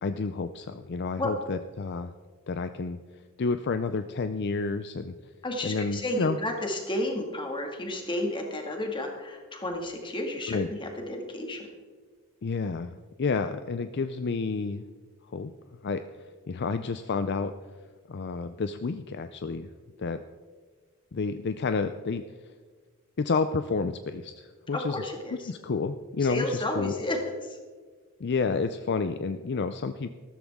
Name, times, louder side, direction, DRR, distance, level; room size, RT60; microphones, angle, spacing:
voice 1, 0.0-2.1 2.5-5.1 5.6-6.4 10.5-10.7 12.4-14.8 15.3-15.5 15.8-17.5 18.0-19.7 20.0-20.2 21.1-22.2 23.2-25.0 25.5-27.0 28.2-30.1, left 4 dB, 50° left, 10 dB, 0.5 m, -30 dB
voice 2, 5.4-11.7 24.7-25.5 26.2-27.6, left 1 dB, 20° left, 2 dB, 2.0 m, -32 dB
14.0 x 13.5 x 3.6 m, 1.5 s
head